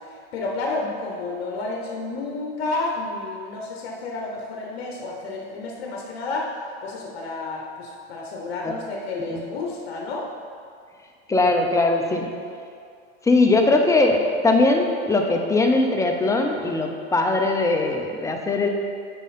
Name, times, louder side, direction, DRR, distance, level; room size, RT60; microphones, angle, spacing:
voice 1, 0.3-6.5 6.8-10.3, left 3 dB, 70° left, -1 dB, 1.1 m, -30 dB
voice 2, 11.3-12.3 13.2-18.7, left 2 dB, 10° left, 3 dB, 0.7 m, -20 dB
9.0 x 4.8 x 4.3 m, 2.3 s
supercardioid pair, 115°, 32 cm